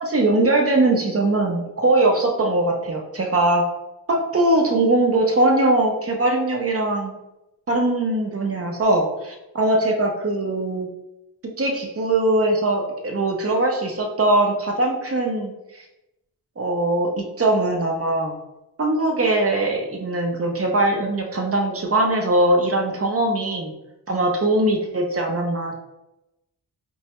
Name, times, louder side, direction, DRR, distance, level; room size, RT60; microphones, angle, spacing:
voice 1, 0.0-3.7 4.1-7.2 7.7-10.9 11.4-15.8 16.6-18.3 18.8-23.7 24.1-25.7, right 2 dB, 35° right, 1 dB, 0.6 m, -21 dB
4.4 x 2.1 x 2.9 m, 0.93 s
wide cardioid pair, 125°, 42 cm